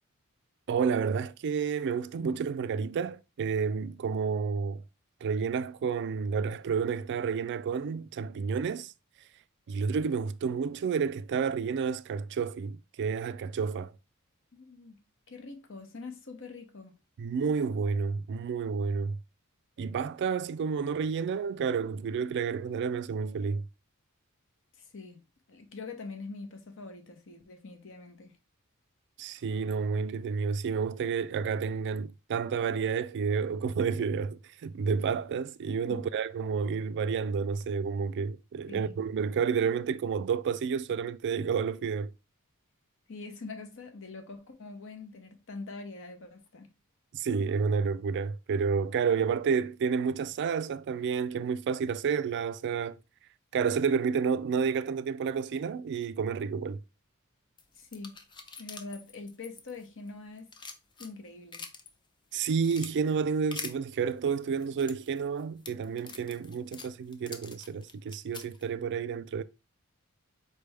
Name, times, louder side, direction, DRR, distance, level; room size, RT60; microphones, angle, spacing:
voice 1, 0.7-4.8 5.2-8.9 9.7-13.9 17.2-19.2 19.8-23.6 29.2-42.1 47.1-53.0 53.5-56.8 62.3-69.4, right 6 dB, 55° right, 0.3 m, -30 dB
voice 2, 14.5-15.0 15.3-16.9 24.9-25.2 25.5-28.3 35.9-36.1 38.7-39.0 43.1-46.7 57.8-58.2 58.6-60.5 61.0-61.6, left 3 dB, 60° left, 1.0 m, -44 dB
sound 1, 57.6-60.1 60.4-61.9 62.3-62.9 63.5-63.7 64.4-68.6, left 5 dB, 20° left, 0.5 m, -44 dB
4.5 x 3.3 x 3.3 m
head